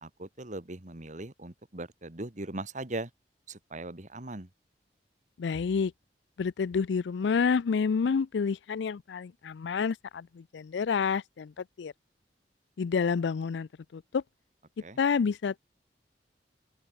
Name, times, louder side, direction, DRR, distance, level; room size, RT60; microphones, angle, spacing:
voice 1, 0.0-3.1 3.5-4.5 14.8-15.0, right 2 dB, 45° right, 2.0 m, -39 dB
voice 2, 5.4-5.9 6.4-11.9 12.8-14.2 15.0-15.6, left 5 dB, 85° left, 0.4 m, -29 dB
open air
head